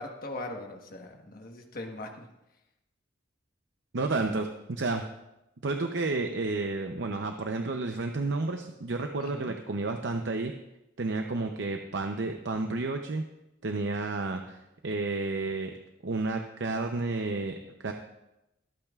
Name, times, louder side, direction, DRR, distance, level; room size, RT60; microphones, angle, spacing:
voice 1, 0.0-2.3 9.2-9.5, left 2 dB, 50° left, 3 dB, 1.3 m, -40 dB
voice 2, 3.9-5.0 5.6-10.5 11.0-13.2 13.6-15.8 16.0-17.9, right 3 dB, 70° right, 4 dB, 0.7 m, -31 dB
23.5 x 8.8 x 2.4 m, 0.92 s
head